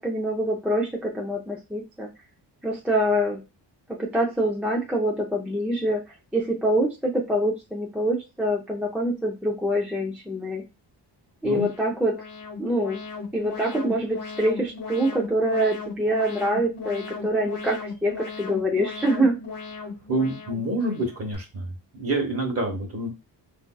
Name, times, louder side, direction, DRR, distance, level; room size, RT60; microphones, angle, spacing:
voice 1, 0.0-2.1 2.6-3.4 4.0-6.0 6.3-10.6 11.4-12.2 12.6-13.0 13.3-19.4, right 1 dB, 5° right, -3 dB, 0.5 m, -25 dB
Alarm, 11.5-21.4, left 4 dB, 60° left, 1.0 m, -37 dB
voice 2, 20.1-23.1, right 1 dB, 35° right, 2 dB, 1.2 m, -27 dB
3.6 x 2.7 x 2.2 m, 0.26 s
cardioid pair, 95°, 43 cm